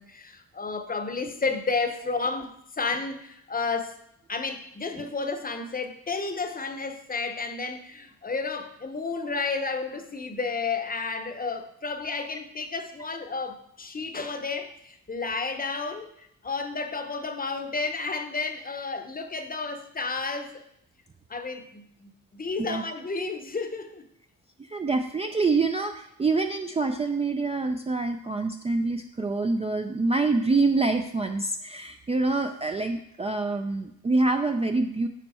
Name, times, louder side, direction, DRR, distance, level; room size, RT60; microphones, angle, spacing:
voice 1, 0.0-4.0 4.3-20.6 21.3-24.0, left 4 dB, 25° left, 0.8 m, -32 dB
voice 2, 24.7-35.1, right 3 dB, 20° right, 0.4 m, -26 dB
9.2 x 5.2 x 4.2 m
wide cardioid pair, 135°, 34 cm